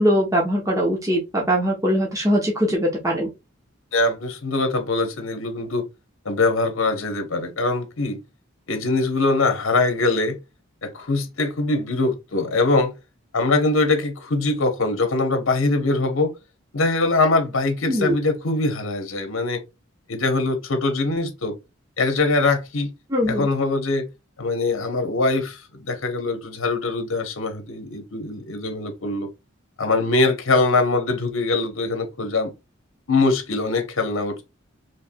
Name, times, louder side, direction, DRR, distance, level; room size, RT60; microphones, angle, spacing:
voice 1, 0.0-3.3 17.9-18.1 23.1-23.5, equal, 15° right, 0.8 m, -21 dB
voice 2, 3.9-5.8 6.2-8.2 8.7-10.4 10.8-12.9 13.3-16.3 16.7-19.6 20.1-21.5 22.0-22.9 23.3-24.1 24.4-29.3 29.8-32.5 33.1-34.4, left 3 dB, 70° left, 0.9 m, -22 dB
4.5 x 3.2 x 2.2 m
head